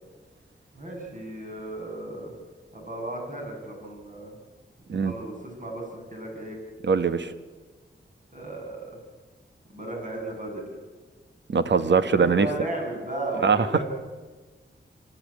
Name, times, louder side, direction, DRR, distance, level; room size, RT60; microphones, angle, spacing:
voice 1, 0.7-2.3 2.7-4.3 4.9-6.6 8.3-9.0 9.7-10.7 11.9-13.8, right 2 dB, 40° right, 0 dB, 7.8 m, -35 dB
voice 2, 6.8-7.3 11.5-12.5 13.4-13.8, right 5 dB, 65° right, 11 dB, 1.3 m, -22 dB
25.0 x 12.5 x 8.6 m, 1.3 s
wide cardioid pair, 75°, 20 cm